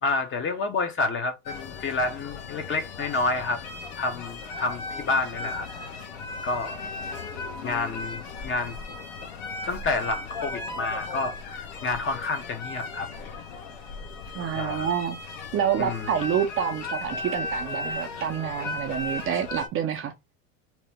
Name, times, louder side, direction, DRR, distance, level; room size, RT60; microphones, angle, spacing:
voice 1, 0.0-3.6 4.0-5.7 6.4-6.8 7.6-8.8 9.6-13.1 14.5-14.9 15.8-16.1, left 3 dB, 30° left, 0.8 m, -29 dB
sound 1, 1.5-19.7, left 3 dB, 60° left, 1.0 m, -36 dB
voice 2, 14.3-15.2 15.5-20.1, right 8 dB, 35° right, 0.5 m, -27 dB
2.9 x 2.1 x 3.3 m
hypercardioid pair, 90°, 41 cm